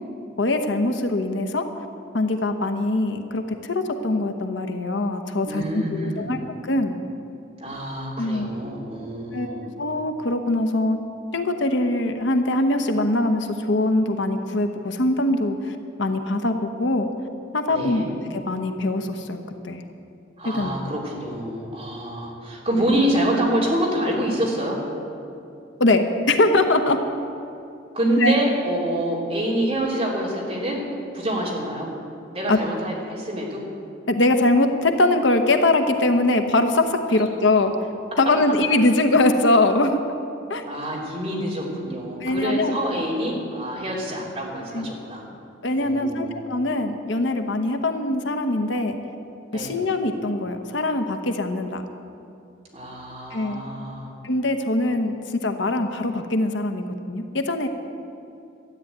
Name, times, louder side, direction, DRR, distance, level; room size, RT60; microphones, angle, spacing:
voice 1, 0.4-1.7 2.1-7.0 8.2-8.5 9.3-11.0 11.3-17.1 17.5-18.0 18.3-19.8 20.4-20.7 25.8-27.0 28.2-28.4 32.5-32.6 34.1-37.7 38.2-40.0 40.5-40.6 42.2-43.0 44.7-44.9 45.6-49.0 49.5-51.8 53.3-53.6 54.2-57.7, left 2 dB, 70° left, 7 dB, 1.0 m, -22 dB
voice 2, 5.5-6.4 7.6-9.7 17.7-18.1 20.4-24.8 27.9-30.8 31.1-31.9 32.3-33.6 40.6-45.2 45.8-46.5 49.5-49.8 52.7-54.1, right 1 dB, 30° right, -4 dB, 3.2 m, -26 dB
13.0 x 9.3 x 8.7 m, 2.6 s
head